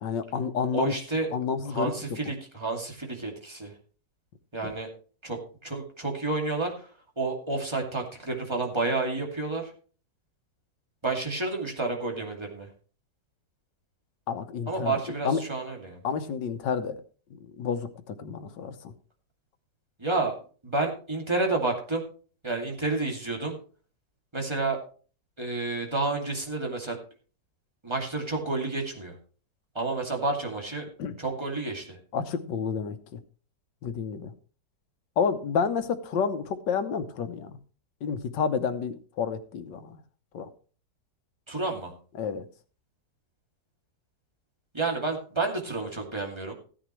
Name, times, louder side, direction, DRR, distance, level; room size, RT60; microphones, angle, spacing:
voice 1, 0.0-0.9 1.3-1.9 2.3-2.4 14.3-15.0 15.3-15.4 16.0-17.0 17.3-18.9 31.0-31.2 32.1-33.2 33.8-34.3 35.2-37.6 38.0-40.0 40.3-40.5 42.2-42.5, left 6 dB, 90° left, 11 dB, 1.6 m, -30 dB
voice 2, 0.7-1.3 1.7-3.7 4.5-4.9 5.2-6.9 7.2-9.7 11.0-12.7 14.7-16.0 20.0-20.3 20.6-22.0 22.4-23.5 24.3-24.8 25.4-27.0 27.8-29.1 29.7-30.9 31.2-32.0 41.5-41.9 44.7-46.5, right 3 dB, 15° right, 1 dB, 2.5 m, -30 dB
15.0 x 10.0 x 3.2 m, 0.39 s
omnidirectional pair, 1.9 m